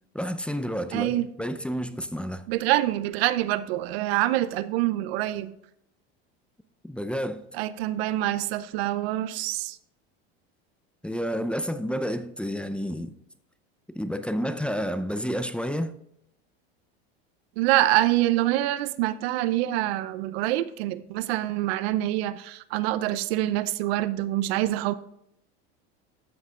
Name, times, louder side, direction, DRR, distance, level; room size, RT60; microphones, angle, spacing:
voice 1, 0.1-2.5 6.8-7.5 11.0-13.2 13.9-16.0, equal, 5° left, 0.6 m, -30 dB
voice 2, 0.9-1.3 2.5-5.5 7.6-9.8 17.6-24.9, right 15 dB, 75° right, 0.7 m, -25 dB
13.0 x 8.1 x 2.4 m
supercardioid pair, 100°, 31 cm